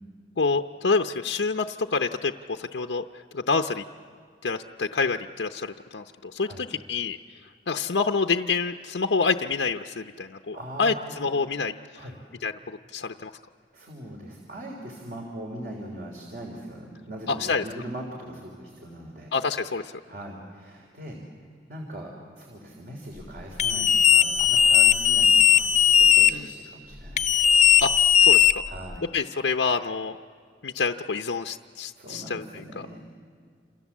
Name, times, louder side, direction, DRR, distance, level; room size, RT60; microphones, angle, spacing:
voice 1, 0.4-3.0 3.3-3.8 4.4-7.2 7.7-12.0 12.4-13.3 17.3-17.6 19.3-19.9 26.3-26.5 27.8-27.9 28.2-28.6 29.1-30.1 30.6-32.9, left 4 dB, 90° left, 5 dB, 0.7 m, -27 dB
voice 2, 10.5-11.5 11.9-12.2 13.7-19.3 20.1-21.2 21.7-27.4 28.7-29.0 31.9-33.0, right 1 dB, 55° right, 1 dB, 3.5 m, -40 dB
sound 1, 23.6-26.3 27.2-29.0, left 9 dB, 40° left, 0.7 m, -18 dB
28.5 x 28.0 x 7.3 m, 2.1 s
head